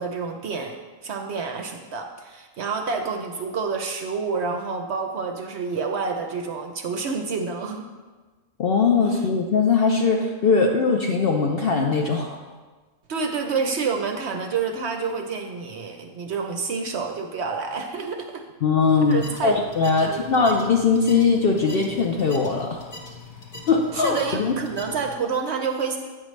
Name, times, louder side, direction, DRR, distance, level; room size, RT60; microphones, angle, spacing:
voice 1, 0.0-7.9 13.1-18.4 19.1-19.5 20.0-20.5 23.9-26.0, right 5 dB, 60° right, 4 dB, 0.8 m, -28 dB
voice 2, 8.6-12.4 18.6-22.8 23.7-24.5, left 4 dB, 60° left, 2 dB, 0.6 m, -20 dB
sound 1, 18.8-25.2, left 3 dB, 40° left, 1.2 m, -41 dB
9.1 x 6.4 x 3.1 m, 1.3 s
omnidirectional pair, 1.5 m